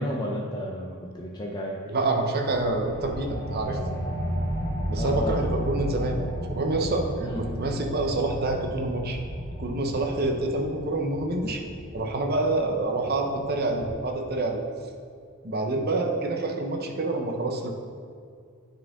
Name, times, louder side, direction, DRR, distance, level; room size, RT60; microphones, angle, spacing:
voice 1, 0.0-1.8 4.9-5.4 7.2-7.4, equal, 20° left, -1 dB, 0.5 m, -31 dB
voice 2, 1.9-3.8 4.9-9.2 9.6-11.6 11.9-14.6 15.4-17.7, right 2 dB, 45° right, 3 dB, 0.7 m, -27 dB
sound 1, 2.5-13.5, equal, 85° right, 1.8 m, -34 dB
sound 2, 2.8-13.9, equal, 45° left, 1.4 m, -43 dB
9.5 x 4.4 x 3.6 m, 2.3 s
head